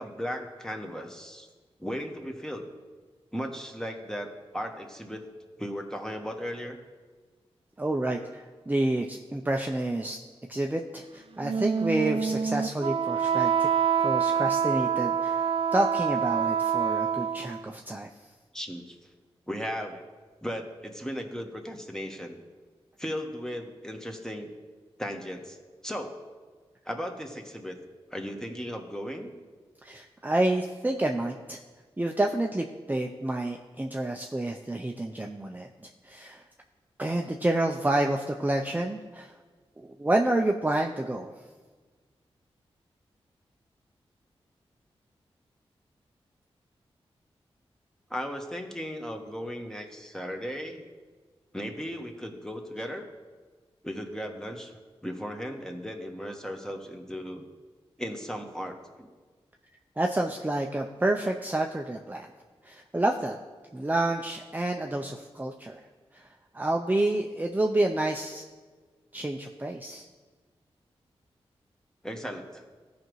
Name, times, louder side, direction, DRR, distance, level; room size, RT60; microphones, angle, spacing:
voice 1, 0.0-1.5 1.8-2.7 3.3-4.3 4.5-5.3 5.6-6.8 18.5-19.0 19.5-20.0 20.4-22.3 23.0-24.5 25.0-25.6 25.8-26.2 26.8-27.8 28.1-29.3 48.1-50.9 51.5-53.1 53.8-54.7 55.0-57.4 58.0-59.1 72.0-72.7, equal, 5° left, 2 dB, 1.4 m, -36 dB
voice 2, 7.8-10.2 10.5-13.7 14.0-18.1 29.8-31.6 32.0-36.4 37.0-39.3 39.8-41.3 60.0-62.3 62.6-63.4 63.7-65.8 66.1-66.3 66.5-68.4 69.1-70.1, right 1 dB, 15° right, 2 dB, 0.6 m, -29 dB
Wind instrument woodwind instrument, 11.4-17.6, right 7 dB, 55° right, 0.4 m, -26 dB
14.0 x 5.1 x 3.2 m, 1.4 s
cardioid pair, 40°, 11 cm